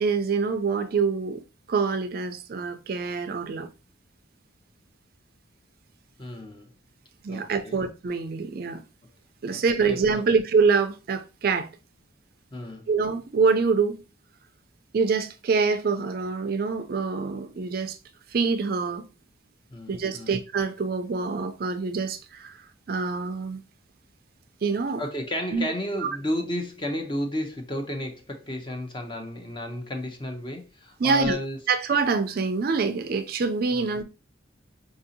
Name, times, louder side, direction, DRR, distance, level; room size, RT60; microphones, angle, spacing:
voice 1, 0.0-1.4 1.7-3.7 7.2-8.8 9.4-11.7 12.9-14.0 14.9-18.0 18.3-19.0 19.9-22.6 22.9-23.6 24.6-25.0 25.5-25.6 26.0-26.2 31.0-31.4 31.7-34.0, right 4 dB, 45° right, 0.4 m, -25 dB
voice 2, 6.2-6.7 7.3-7.8 9.5-10.2 12.5-12.9 19.7-20.4 25.0-31.6 33.7-33.9, left 1 dB, 25° left, 0.6 m, -33 dB
4.9 x 2.7 x 2.6 m
head